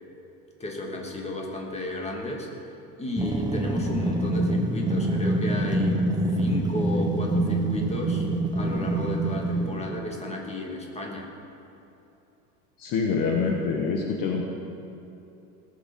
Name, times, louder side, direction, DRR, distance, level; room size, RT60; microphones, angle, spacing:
voice 1, 0.6-2.5 3.0-6.1 6.3-11.3, left 2 dB, 15° left, 0 dB, 2.5 m, -33 dB
sound 1, 3.2-9.9, right 1 dB, 10° right, 1.1 m, -26 dB
voice 2, 12.8-14.5, left 5 dB, 45° left, 0 dB, 1.5 m, -26 dB
19.0 x 7.4 x 5.4 m, 2.8 s
hypercardioid pair, 90°, 47 cm